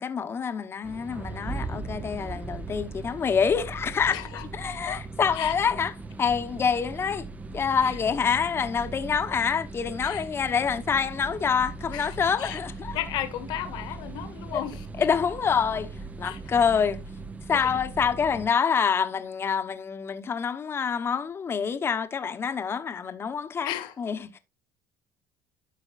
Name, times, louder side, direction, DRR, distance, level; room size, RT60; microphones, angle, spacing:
voice 1, 0.0-5.9 6.2-7.3 7.5-13.0 14.5-14.6 15.0-15.9 16.2-17.0 17.5-23.7 24.0-24.4, left 6 dB, 30° left, 1.0 m, -26 dB
sound 1, 0.8-18.5, right 3 dB, 20° right, 0.7 m, -39 dB
voice 2, 4.1-4.4 4.9-5.0 5.3-5.5 7.8-8.0 10.0-10.2 11.9-12.6 12.9-15.1 16.2-16.4 17.5-17.8 23.6-23.9, left 13 dB, 70° left, 1.4 m, -35 dB
12.5 x 5.2 x 2.5 m
cardioid pair, 115°, 8 cm